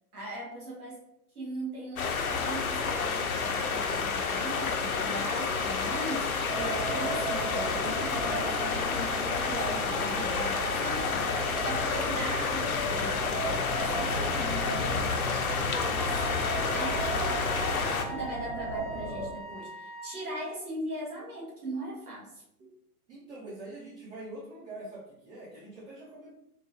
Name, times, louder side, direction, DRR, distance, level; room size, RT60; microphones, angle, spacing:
voice 1, 0.1-1.0 1.3-17.6 18.0-22.7, right 1 dB, 70° right, -3 dB, 1.4 m, -39 dB
sound 1, 2.0-18.0, left 5 dB, 65° left, 0.6 m, -30 dB
sound 2, 6.5-19.3, right 3 dB, 10° right, 0.5 m, -37 dB
voice 2, 11.6-12.0 13.7-14.4 23.1-26.4, right 2 dB, 45° right, -8 dB, 1.2 m, -44 dB
Wind instrument woodwind instrument, 15.9-20.2, right 1 dB, 25° left, 0.9 m, -43 dB
3.8 x 2.7 x 2.6 m, 0.78 s
figure-of-eight pair, 110°, 46 cm